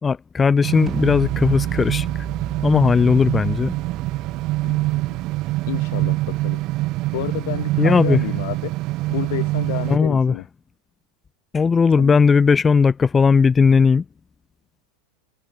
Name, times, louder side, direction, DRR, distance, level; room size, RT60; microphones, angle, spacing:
voice 1, 0.0-2.1 2.6-3.7 7.8-8.2 9.9-10.4 11.5-14.0, left 5 dB, 20° left, 0.9 m, -17 dB
sound 1, 0.6-10.0, right 19 dB, 50° right, 0.4 m, -24 dB
sound 2, 0.9-6.8, right 6 dB, 25° right, 3.2 m, -34 dB
voice 2, 4.6-5.2 5.7-6.6 7.1-8.8 9.1-10.4 12.0-12.2, left 20 dB, 65° left, 0.6 m, -30 dB
hypercardioid pair, 90°, 0 cm